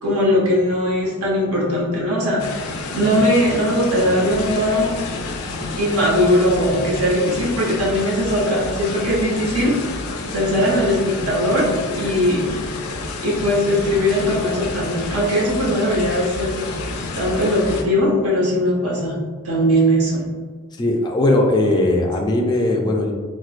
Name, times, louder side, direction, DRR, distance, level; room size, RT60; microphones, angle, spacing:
voice 1, 0.0-2.6 2.9-5.0 5.8-9.8 10.3-12.5 13.2-16.5 17.1-19.2 19.4-20.3, equal, 85° right, -4 dB, 1.0 m, -19 dB
sound 1, 2.4-17.8, left 3 dB, 85° left, 0.4 m, -30 dB
sound 2, 4.3-17.8, left 1 dB, 45° right, 0.4 m, -36 dB
voice 2, 20.8-23.1, left 1 dB, 20° left, 1 dB, 0.3 m, -19 dB
4.4 x 2.1 x 2.4 m, 1.5 s
head